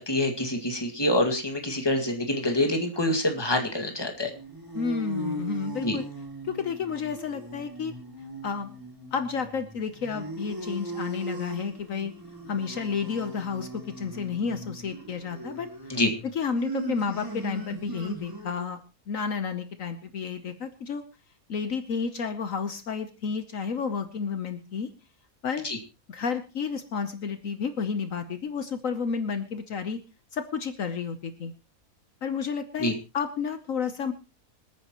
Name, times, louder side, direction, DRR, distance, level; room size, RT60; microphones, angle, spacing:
voice 1, 0.0-4.3 5.8-6.0 15.9-16.1 25.6-25.8 32.8-32.9, left 1 dB, 15° left, 4 dB, 2.0 m, -26 dB
sound 1, 4.2-18.7, right 1 dB, 15° right, 2.2 m, -39 dB
voice 2, 4.7-6.0 6.5-7.9 8.4-8.8 9.1-12.1 12.5-15.7 16.3-18.8 19.1-21.0 21.5-24.9 25.4-25.7 26.1-30.0 30.3-31.5 32.2-34.1, left 6 dB, 65° left, 9 dB, 1.3 m, -31 dB
26.0 x 9.3 x 3.0 m, 0.29 s
omnidirectional pair, 1.5 m